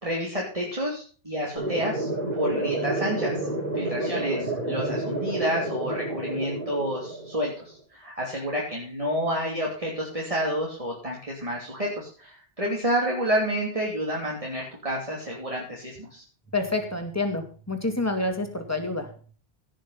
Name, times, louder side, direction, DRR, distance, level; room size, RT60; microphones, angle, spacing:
voice 1, 0.0-2.1 2.4-3.5 3.7-16.2, equal, 35° right, -2 dB, 2.9 m, -29 dB
sound 1, 1.5-7.6, right 2 dB, 60° right, 6.1 m, -29 dB
voice 2, 16.5-19.1, left 2 dB, 15° left, 5 dB, 2.3 m, -28 dB
17.0 x 6.5 x 5.6 m, 0.40 s
omnidirectional pair, 1.0 m